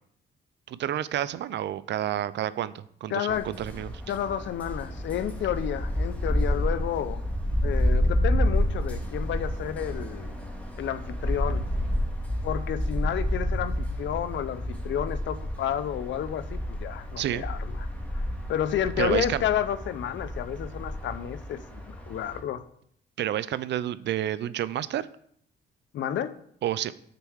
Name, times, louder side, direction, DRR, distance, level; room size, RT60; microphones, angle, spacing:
voice 1, 0.7-3.9 17.2-17.4 19.0-19.4 23.2-25.1 26.6-26.9, right 11 dB, 65° right, 17 dB, 0.5 m, -29 dB
voice 2, 3.1-3.5 4.1-7.2 7.6-10.3 10.8-11.6 12.4-17.9 18.5-22.6 25.9-26.3, left 10 dB, 70° left, 13 dB, 0.6 m, -31 dB
sound 1, 3.3-22.4, equal, 5° left, 1.9 m, -30 dB
6.8 x 4.6 x 6.2 m, 0.66 s
cardioid pair, 90°, 20 cm